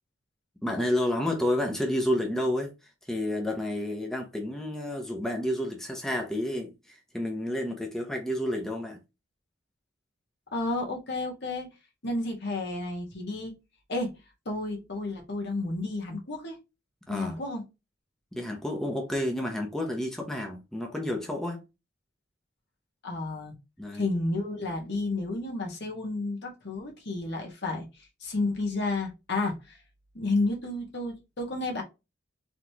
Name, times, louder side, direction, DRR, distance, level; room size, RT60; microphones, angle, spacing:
voice 1, 0.6-9.0 17.1-17.4 18.3-21.6 23.8-24.0, left 1 dB, 5° left, 0.8 m, -30 dB
voice 2, 10.5-11.7 12.0-13.5 13.9-14.2 14.4-16.6 17.1-17.6 23.0-23.5 23.9-29.8 30.1-31.8, left 2 dB, 60° left, 1.5 m, -31 dB
4.1 x 3.2 x 2.9 m
head